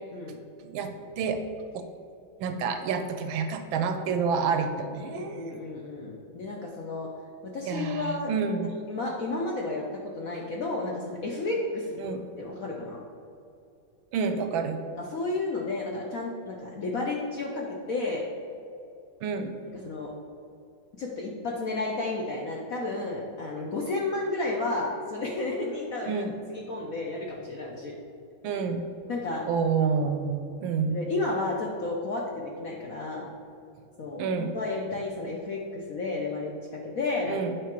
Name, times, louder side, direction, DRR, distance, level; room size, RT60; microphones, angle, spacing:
voice 1, 2.4-5.4 7.7-8.7 12.0-12.2 14.1-14.8 19.2-19.5 26.1-26.3 28.4-28.8 29.5-31.0 34.2-34.5 37.3-37.5, right 5 dB, 75° right, 7 dB, 1.3 m, -28 dB
voice 2, 5.1-7.1 7.4-8.3 8.9-12.0 12.4-13.0 15.0-18.2 19.8-20.1 20.9-26.2 26.5-28.0 28.5-28.6 29.1-29.5 29.8-30.1 30.9-33.3 34.0-37.4, left 2 dB, 65° left, -2 dB, 0.9 m, -32 dB
8.3 x 5.0 x 4.4 m, 2.6 s
omnidirectional pair, 2.3 m